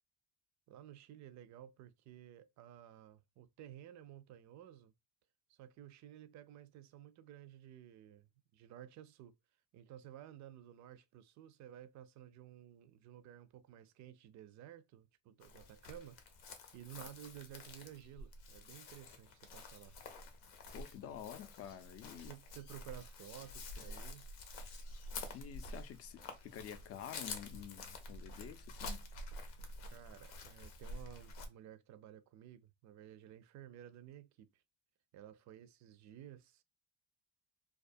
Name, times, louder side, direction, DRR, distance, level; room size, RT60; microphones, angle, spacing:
voice 1, 0.7-4.9 5.5-9.3 9.7-20.0 22.1-24.3 29.8-34.6 35.1-36.6, right 11 dB, 55° right, 0.4 m, -54 dB
Chirp tweet, 15.4-31.5, left 2 dB, 85° left, 0.7 m, -49 dB
voice 2, 20.7-22.3 25.3-29.1, left 9 dB, 45° left, 0.5 m, -49 dB
2.3 x 2.3 x 2.5 m
supercardioid pair, 100°, 35 cm